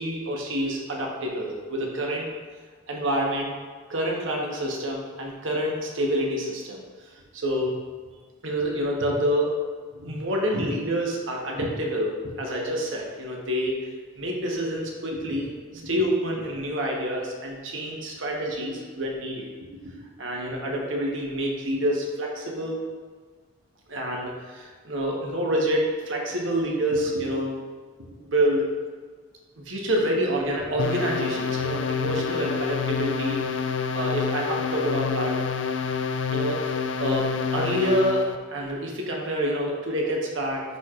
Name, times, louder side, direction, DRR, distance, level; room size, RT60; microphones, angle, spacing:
voice 1, 0.0-2.3 2.9-3.5 3.9-6.8 7.3-7.8 8.4-9.6 9.9-13.8 14.2-19.5 20.2-22.8 23.9-27.5 28.2-28.7 29.6-33.6 33.9-35.4 36.3-40.6, equal, 75° right, -1 dB, 1.1 m, -27 dB
sound 1, 30.8-38.3, left 6 dB, 70° left, 0.4 m, -28 dB
9.7 x 4.5 x 2.4 m, 1.5 s
head